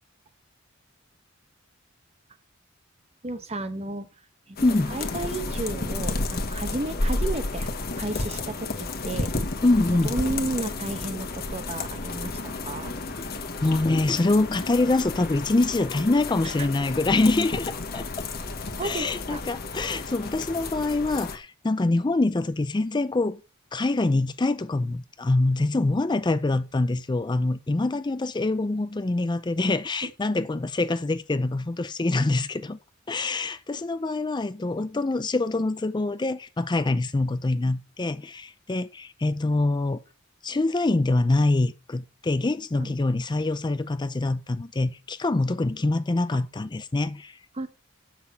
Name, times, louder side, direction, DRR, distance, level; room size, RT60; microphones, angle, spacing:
voice 1, 3.2-4.1 4.5-4.6 4.9-9.3 10.0-13.0 16.4-16.5 18.8-19.4 42.8-42.9 47.5-47.7, right 2 dB, 30° right, 0.9 m, -33 dB
sound 1, 4.6-21.4, left 2 dB, 50° left, 1.4 m, -32 dB
voice 2, 4.6-5.0 9.6-10.1 13.6-18.3 18.8-23.4 23.7-32.8 33.1-40.0 40.4-47.4, left 2 dB, 20° left, 0.5 m, -25 dB
7.5 x 6.0 x 7.0 m
head